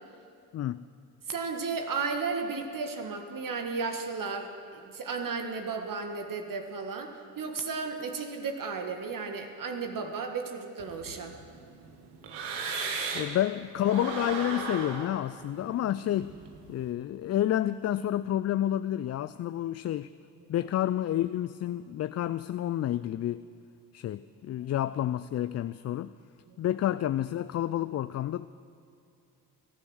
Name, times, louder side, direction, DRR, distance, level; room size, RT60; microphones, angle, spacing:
voice 1, 1.3-11.4 13.1-13.3, right 4 dB, 50° right, 5 dB, 1.7 m, -34 dB
sound 1, 10.8-13.4 13.8-16.8, right 4 dB, 75° right, 1.9 m, -37 dB
voice 2, 13.1-16.3 16.7-20.1 20.5-23.4 23.9-26.1 26.6-28.5, left 12 dB, 40° left, 14 dB, 0.4 m, -29 dB
18.0 x 11.5 x 6.3 m, 2.6 s
hypercardioid pair, 55°, 43 cm